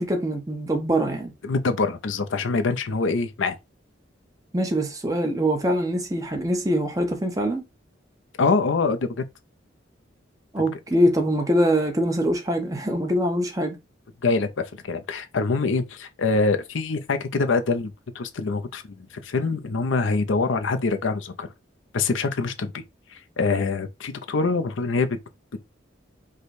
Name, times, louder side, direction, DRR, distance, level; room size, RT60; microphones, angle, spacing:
voice 1, 0.0-1.3 4.5-7.6 10.5-13.8, equal, 20° right, 0.8 m, -23 dB
voice 2, 1.4-3.6 8.4-9.2 14.2-21.5 21.9-22.8 23.1-25.2, left 4 dB, 85° left, 0.6 m, -25 dB
4.9 x 2.2 x 4.1 m
head